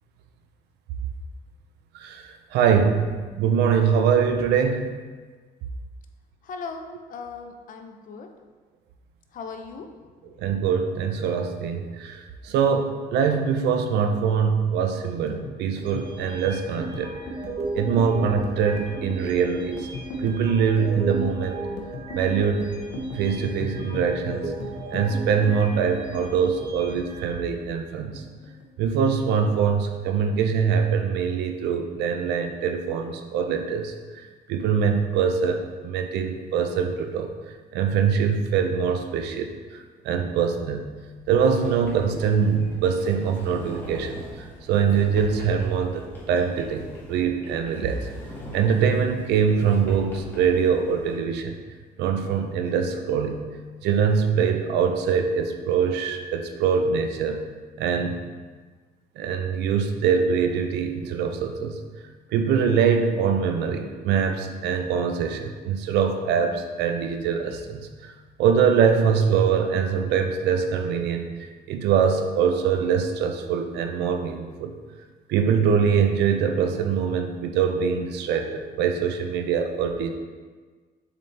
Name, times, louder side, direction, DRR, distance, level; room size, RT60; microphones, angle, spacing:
voice 1, 1.9-4.9 10.4-17.1 17.7-19.9 20.2-21.6 22.1-22.7 23.1-24.5 24.9-28.2 28.8-37.3 37.7-39.5 40.0-40.9 41.3-44.2 44.7-48.1 48.5-51.5 52.0-53.4 53.8-57.4 57.8-58.2 59.2-61.8 62.3-68.1 68.4-74.7 75.3-80.1, right 6 dB, 80° right, 6 dB, 0.6 m, -23 dB
voice 2, 6.4-8.3 9.3-9.9, left 4 dB, 55° left, 5 dB, 0.7 m, -38 dB
sound 1, 15.1-27.7 27.9-29.0 29.3-29.6 29.9-30.6, left 1 dB, 80° left, 1.0 m, -37 dB
sound 2, 15.8-27.3, right 3 dB, 30° right, 1.1 m, -37 dB
Sliding door, 41.5-51.1, equal, 10° left, 1.7 m, -41 dB
7.0 x 4.3 x 3.3 m, 1.4 s
cardioid pair, 110°, 17 cm